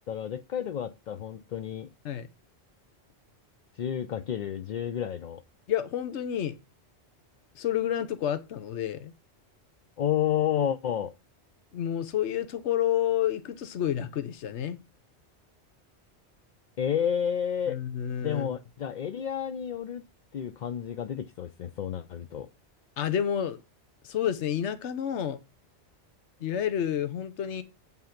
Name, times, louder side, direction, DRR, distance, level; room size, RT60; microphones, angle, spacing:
voice 1, 0.1-1.9 3.8-5.4 10.0-11.1 16.8-17.8 18.2-20.0 20.3-22.5, left 9 dB, 55° left, 0.6 m, -30 dB
voice 2, 5.7-6.6 7.6-9.1 11.7-14.8 17.7-18.5 23.0-23.6 24.0-25.4 26.4-27.6, left 10 dB, 80° left, 1.1 m, -29 dB
8.0 x 5.6 x 5.8 m
omnidirectional pair, 1.2 m